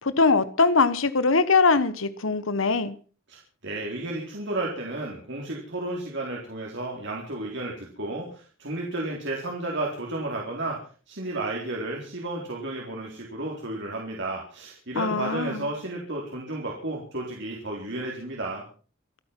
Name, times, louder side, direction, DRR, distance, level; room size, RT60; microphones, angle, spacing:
voice 1, 0.0-2.9 15.0-15.6, left 4 dB, 80° left, 1.2 m, -22 dB
voice 2, 3.3-10.8 11.1-18.6, right 2 dB, 60° right, 4.0 m, -32 dB
26.0 x 9.2 x 5.9 m
head